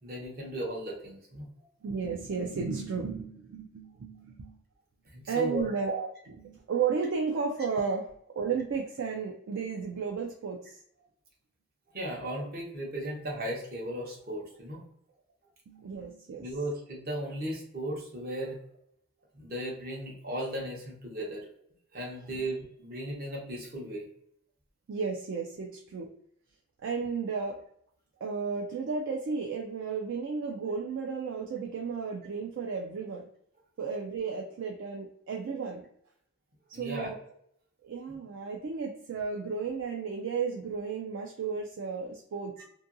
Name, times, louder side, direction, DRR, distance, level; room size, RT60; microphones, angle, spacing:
voice 1, 0.0-1.5 5.1-5.6 11.9-14.8 16.4-18.6 19.3-21.5 21.9-24.1 36.7-37.1 38.1-38.2, right 1 dB, 45° right, -1 dB, 0.8 m, -36 dB
voice 2, 1.8-4.6 5.3-8.1 8.4-10.8 15.7-16.5 22.3-22.5 24.9-26.1 26.8-27.6 28.2-33.3 33.8-35.9 36.8-37.2 37.8-42.6, right 5 dB, 60° right, 1 dB, 0.3 m, -33 dB
2.6 x 2.6 x 2.5 m, 0.70 s
head